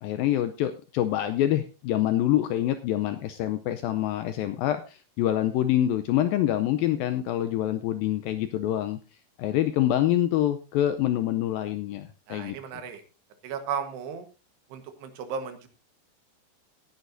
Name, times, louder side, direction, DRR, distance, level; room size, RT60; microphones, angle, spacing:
voice 1, 0.0-9.0 9.4-12.6, left 12 dB, 80° left, 10 dB, 2.1 m, -26 dB
voice 2, 12.3-13.0 13.4-14.3 14.7-15.7, right 6 dB, 80° right, 8 dB, 3.4 m, -35 dB
18.0 x 10.5 x 2.6 m, 0.30 s
omnidirectional pair, 4.8 m